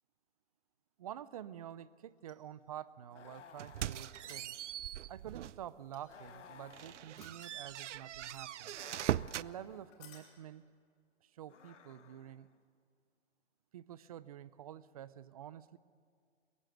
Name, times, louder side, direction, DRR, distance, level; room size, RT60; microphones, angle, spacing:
voice 1, 1.0-4.5 5.1-8.8 9.4-10.6 11.2-12.5 13.7-15.8, right 10 dB, 35° right, 18 dB, 0.5 m, -48 dB
sound 1, 2.2-2.9 4.1-4.9 5.9-6.5 7.2-8.1 9.9-10.4 12.6-12.7, left 8 dB, 30° left, 5.0 m, -60 dB
sound 2, 3.1-4.9 6.1-7.6 8.7-10.1 11.4-12.6, left 7 dB, 85° left, 1.4 m, -58 dB
sound 3, 3.6-5.7 6.1-6.3 6.7-9.5, right 12 dB, 80° right, 0.5 m, -40 dB
22.0 x 15.0 x 7.9 m, 2.2 s
hypercardioid pair, 150°, 35 cm